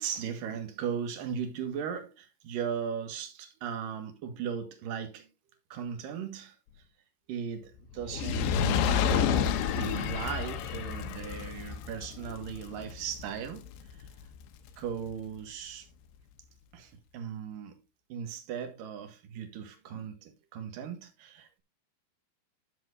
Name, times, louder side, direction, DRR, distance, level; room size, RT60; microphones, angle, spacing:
voice 1, 0.0-5.3 5.7-6.6 7.3-13.7 13.9-14.1 14.8-15.9 16.7-17.8 18.1-21.6, right 7 dB, 60° right, 2.9 m, -37 dB
Fire, 8.0-14.4 15.1-15.2, left 8 dB, 85° left, 3.3 m, -30 dB
13.0 x 7.5 x 2.6 m
omnidirectional pair, 5.1 m